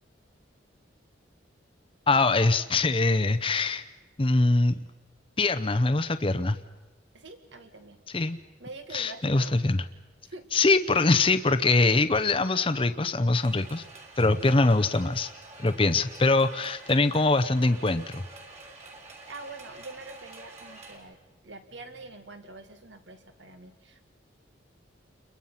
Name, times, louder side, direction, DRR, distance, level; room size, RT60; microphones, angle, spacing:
voice 1, 2.1-3.8 4.2-4.8 5.4-6.6 8.1-8.4 8.9-9.8 10.5-13.8 14.2-15.3 15.6-18.2, left 3 dB, 30° left, 10 dB, 0.7 m, -23 dB
voice 2, 7.1-8.0 8.6-9.5 10.2-10.5 19.3-21.2 21.4-24.0, right 2 dB, 75° right, 8 dB, 2.0 m, -45 dB
sound 1, 13.4-21.0, right 2 dB, 35° right, 3.6 m, -47 dB
29.5 x 22.5 x 5.7 m, 1.2 s
head